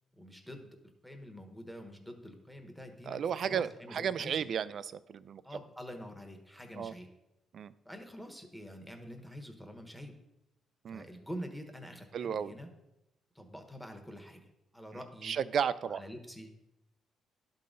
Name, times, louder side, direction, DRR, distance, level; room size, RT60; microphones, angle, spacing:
voice 1, 0.2-0.7 1.0-4.4 5.4-7.1 7.8-10.1 10.9-12.7 13.3-14.5 14.7-15.4 15.8-16.5, equal, ahead, 4 dB, 1.2 m, -46 dB
voice 2, 3.1-5.4 6.8-6.9 7.5-7.7 10.8-11.1 12.1-12.5 15.2-16.0, right 8 dB, 60° right, 16 dB, 0.3 m, -33 dB
11.5 x 3.9 x 3.8 m, 0.91 s
cardioid pair, 90°, 0 cm